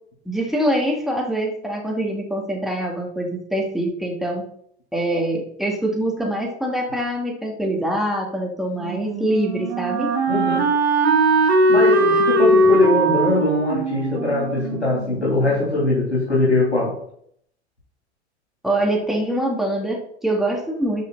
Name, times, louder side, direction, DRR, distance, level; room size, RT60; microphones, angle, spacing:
voice 1, 0.2-4.4 4.9-10.1 18.6-21.1, right 1 dB, ahead, -1 dB, 2.9 m, -24 dB
Wind instrument woodwind instrument, 8.8-15.7, right 1 dB, 70° right, 2.2 m, -20 dB
voice 2, 10.3-10.7 11.7-17.0, left 2 dB, 85° left, -6 dB, 3.7 m, -21 dB
12.0 x 6.0 x 4.3 m, 0.67 s
figure-of-eight pair, 80°, 33 cm